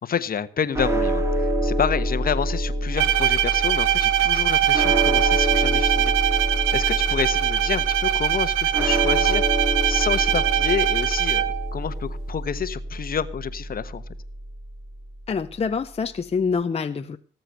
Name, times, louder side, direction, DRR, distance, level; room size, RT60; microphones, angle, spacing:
voice 1, 0.0-6.3 6.7-9.4 9.9-11.4 11.7-14.0, left 8 dB, 50° left, 12 dB, 1.2 m, -29 dB
sound 1, 0.7-15.0, right 1 dB, 15° right, 2.5 m, -27 dB
Bowed string instrument, 3.0-11.7, right 12 dB, 90° right, 0.9 m, -22 dB
voice 2, 15.3-17.2, left 5 dB, 30° left, 7 dB, 0.8 m, -26 dB
18.5 x 7.9 x 6.6 m, 0.40 s
cardioid pair, 90°, 20 cm